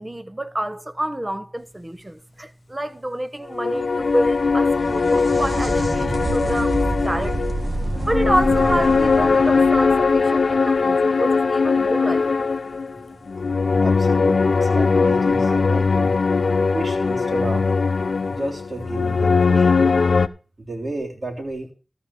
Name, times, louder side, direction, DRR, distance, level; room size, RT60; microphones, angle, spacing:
voice 1, 0.0-7.5 8.1-12.5, right 1 dB, 25° right, 1.2 m, -28 dB
sound 1, 3.5-20.3, left 4 dB, 80° left, 0.7 m, -20 dB
sound 2, 3.8-11.3 14.7-14.8 15.9-16.0, right 1 dB, 40° right, 2.3 m, -28 dB
voice 2, 13.8-16.1 16.7-17.6 18.3-19.7 20.6-21.7, right 2 dB, 55° right, 3.4 m, -32 dB
14.0 x 4.9 x 8.4 m
cardioid pair, 45°, 0 cm